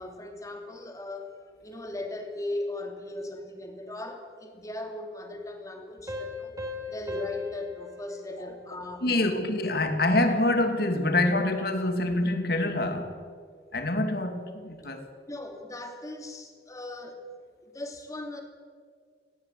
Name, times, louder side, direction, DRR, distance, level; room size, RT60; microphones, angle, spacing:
voice 1, 0.0-6.6 6.9-9.3 15.3-17.2 17.6-18.4, left 2 dB, 20° left, 2.8 m, -38 dB
Piano, 6.1-9.4, left 3 dB, 20° right, 3.7 m, -39 dB
voice 2, 9.0-13.2 13.7-15.1, left 2 dB, 60° left, 2.4 m, -26 dB
19.5 x 18.0 x 8.4 m
head